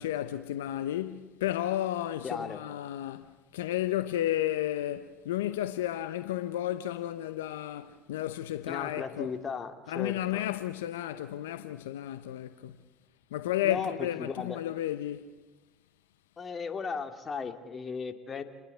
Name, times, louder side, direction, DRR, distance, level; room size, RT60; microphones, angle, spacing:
voice 1, 0.0-9.4 9.9-12.8 13.3-15.3, left 13 dB, 85° left, 0.7 m, -32 dB
voice 2, 2.2-2.6 8.7-10.4 13.6-13.9 14.2-14.6 16.4-18.4, left 5 dB, 35° left, 2.5 m, -36 dB
29.0 x 20.0 x 8.0 m
hypercardioid pair, 65°, 0 cm